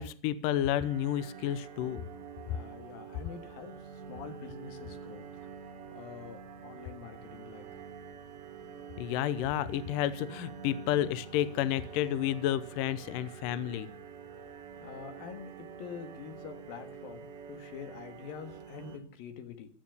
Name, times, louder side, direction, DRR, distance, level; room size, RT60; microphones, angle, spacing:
voice 1, 0.0-2.0 2.5-2.6 9.0-13.9, left 11 dB, 80° left, 15 dB, 1.9 m, -31 dB
sound 1, 0.7-19.0, right 6 dB, 90° right, 4.5 m, -47 dB
voice 2, 2.5-5.2 5.9-7.8 14.8-19.7, left 7 dB, 65° left, 8 dB, 3.3 m, -46 dB
16.5 x 12.0 x 6.9 m, 0.44 s
omnidirectional pair, 4.9 m